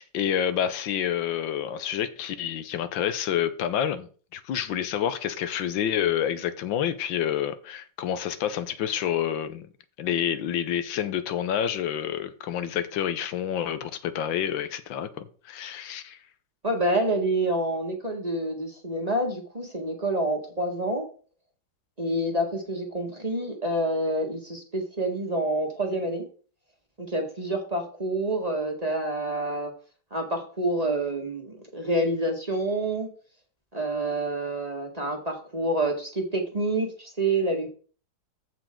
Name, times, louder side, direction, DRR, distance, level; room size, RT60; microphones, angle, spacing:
voice 1, 0.0-9.7 10.0-16.2, left 9 dB, 85° left, 1.6 m, -28 dB
voice 2, 16.6-21.1 22.0-26.2 27.0-29.7 30.1-33.1 33.7-37.7, right 1 dB, 20° right, 1.7 m, -27 dB
14.5 x 5.0 x 3.8 m
omnidirectional pair, 2.0 m